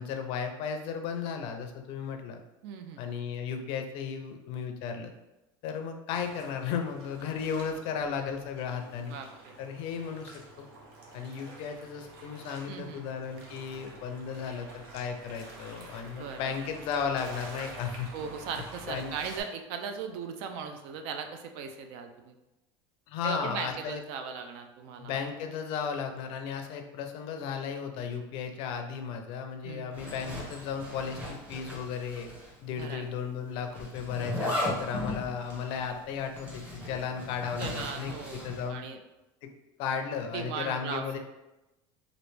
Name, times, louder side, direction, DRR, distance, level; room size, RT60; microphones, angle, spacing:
voice 1, 0.0-2.4 3.0-5.1 5.6-9.2 9.6-10.3 10.6-10.7 11.1-18.1 18.9-19.1 23.1-24.0 25.0-32.3 32.6-38.1 38.4-38.8 39.4-39.5 39.8-41.2, left 6 dB, 55° left, 6 dB, 0.4 m, -35 dB
voice 2, 2.6-3.0 9.0-9.6 12.7-13.2 16.2-16.5 18.1-22.3 23.2-25.1 29.6-29.9 32.7-33.1 37.6-39.0 40.3-41.1, right 6 dB, 60° right, 6 dB, 0.4 m, -38 dB
sound 1, 6.1-19.4, right 2 dB, 85° right, 0.8 m, -48 dB
Zipper (clothing), 29.9-32.5 32.8-32.9 33.7-38.7, left 1 dB, 10° right, 0.9 m, -37 dB
3.1 x 2.5 x 3.2 m, 0.98 s
cardioid pair, 155°, 11 cm